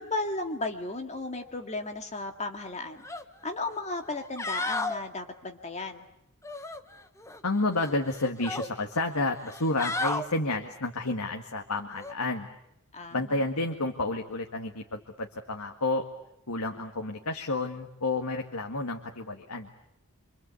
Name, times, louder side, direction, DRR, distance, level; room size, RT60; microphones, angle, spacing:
voice 1, 0.0-3.1 3.4-6.1 12.9-13.3, left 2 dB, 30° left, 5 dB, 2.2 m, -35 dB
sound 1, 3.0-3.2 3.6-3.7 4.2-5.0 6.4-7.4 7.8-8.7 9.4-10.3 12.0-12.1, left 2 dB, 15° left, 1.1 m, -33 dB
voice 2, 7.4-12.5 13.1-16.1 16.5-19.7, left 2 dB, 85° left, 3 dB, 1.9 m, -30 dB
27.0 x 25.5 x 8.4 m, 0.81 s
head